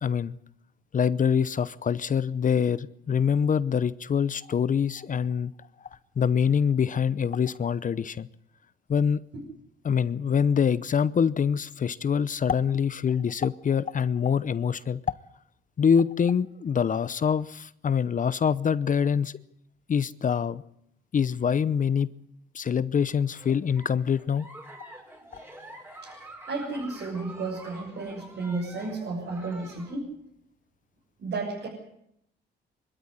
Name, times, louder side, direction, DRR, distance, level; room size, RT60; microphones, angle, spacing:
voice 1, 0.0-0.3 0.9-5.5 6.2-8.3 8.9-9.2 9.8-15.0 15.8-19.3 19.9-20.6 21.1-22.1 22.5-24.4, left 7 dB, 40° left, 17 dB, 0.8 m, -25 dB
Giggle, 23.3-30.0, right 1 dB, 10° right, 5.5 m, -47 dB
voice 2, 26.5-30.1 31.2-31.7, right 3 dB, 60° right, -4 dB, 7.1 m, -32 dB
23.5 x 13.0 x 9.9 m, 0.75 s
cardioid pair, 90°, 20 cm